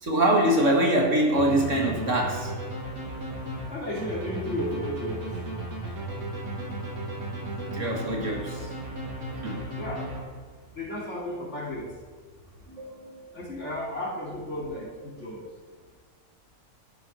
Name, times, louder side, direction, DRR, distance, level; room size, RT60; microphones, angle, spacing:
voice 1, 0.0-2.5 7.7-8.7 9.4-9.6 12.7-13.3, right 1 dB, 60° right, 0 dB, 2.3 m, -24 dB
sound 1, 1.3-10.6, right 1 dB, 80° right, 3.0 m, -35 dB
voice 2, 3.7-5.2 9.8-10.2 10.7-11.9 13.3-15.4, left 1 dB, 55° left, -3 dB, 3.1 m, -33 dB
12.0 x 10.5 x 4.4 m, 1.5 s
omnidirectional pair, 1.5 m